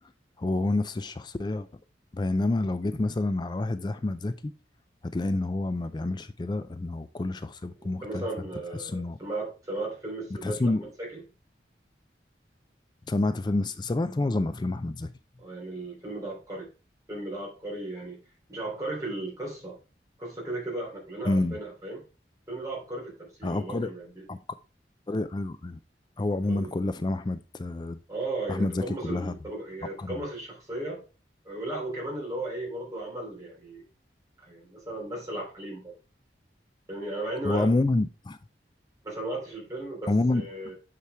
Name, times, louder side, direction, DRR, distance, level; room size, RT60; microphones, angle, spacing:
voice 1, 0.4-1.7 2.1-4.5 5.0-8.3 8.8-9.2 10.4-10.8 13.1-15.1 21.2-21.6 23.4-23.9 24.3-24.4 25.1-25.8 26.2-28.0 28.5-29.4 30.0-30.2 37.4-38.4 40.1-40.4, left 2 dB, 25° left, 0.4 m, -28 dB
voice 2, 7.8-10.7 11.0-11.2 15.4-16.7 17.1-18.2 18.5-19.8 20.2-22.0 22.5-24.2 26.5-26.7 28.1-31.0 31.4-33.8 34.4-36.0 36.9-37.8 39.0-40.7, right 2 dB, 20° right, 3.2 m, -36 dB
8.4 x 4.8 x 3.3 m
head